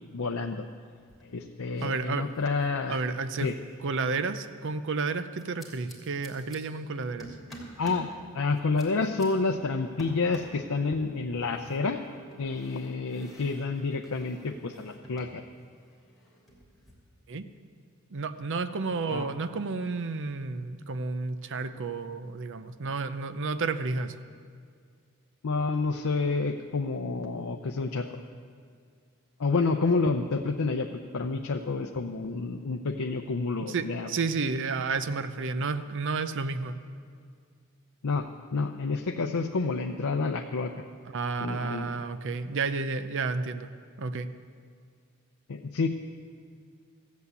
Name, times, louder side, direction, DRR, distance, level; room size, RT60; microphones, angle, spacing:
voice 1, 0.1-0.6 1.2-3.0 3.4-3.6 7.8-8.1 8.3-12.0 12.4-15.4 19.1-19.3 25.4-28.2 29.4-34.1 38.0-38.3 38.5-40.7 41.3-42.0 45.5-45.9, left 3 dB, 85° left, 3 dB, 0.6 m, -29 dB
sound 1, 0.9-1.5 1.7-4.4 5.4-6.6 7.2-8.1 8.5-9.3 10.0-10.6 11.4-15.4 15.6-16.9, equal, ahead, 3.0 m, -50 dB
voice 2, 1.8-2.3 2.9-3.5 3.8-7.3 17.3-17.5 18.1-24.1 33.7-36.8 41.1-43.7 44.0-44.3, right 4 dB, 60° right, 11 dB, 0.6 m, -31 dB
14.5 x 8.3 x 8.2 m, 2.1 s
head